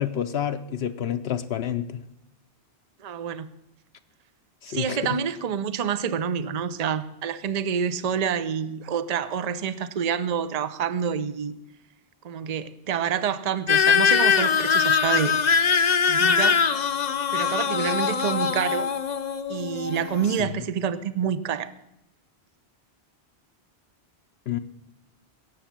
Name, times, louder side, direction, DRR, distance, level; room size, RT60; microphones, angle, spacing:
voice 1, 0.0-2.0 4.6-5.1 20.4-20.6 24.5-24.6, left 10 dB, 75° left, 8 dB, 0.9 m, -29 dB
voice 2, 3.0-3.5 4.7-11.5 12.2-15.4 16.1-16.6 17.3-18.9 19.5-21.7, right 7 dB, 45° right, 14 dB, 0.7 m, -27 dB
sound 1, 13.7-20.4, left 6 dB, 45° left, 0.8 m, -22 dB
17.0 x 7.2 x 7.3 m, 0.86 s
omnidirectional pair, 1.1 m